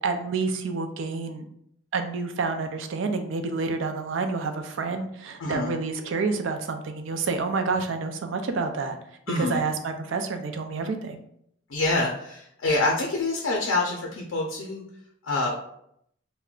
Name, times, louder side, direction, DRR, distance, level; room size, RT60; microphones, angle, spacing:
voice 1, 0.0-1.4 1.9-9.0 9.4-11.2, right 4 dB, 75° right, 6 dB, 0.4 m, -28 dB
voice 2, 5.4-5.7 9.3-9.6 11.7-14.8 15.2-15.5, left 2 dB, 85° left, -1 dB, 0.5 m, -26 dB
2.3 x 2.1 x 3.6 m, 0.72 s
head